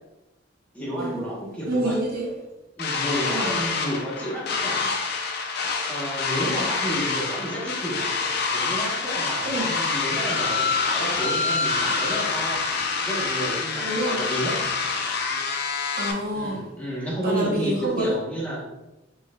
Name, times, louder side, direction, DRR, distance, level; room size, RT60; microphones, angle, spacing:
voice 1, 0.7-2.0 2.8-4.9 5.9-8.0 8.5-12.7 13.0-14.6 16.3-18.7, right 1 dB, 5° left, 1.0 m, -31 dB
voice 2, 1.7-2.3 3.3-3.6 9.4-9.7 13.8-14.3 15.9-16.7 17.2-18.2, equal, 50° right, 0.9 m, -27 dB
sound 1, 2.8-16.1, left 4 dB, 55° left, 0.5 m, -26 dB
5.1 x 3.1 x 2.2 m
head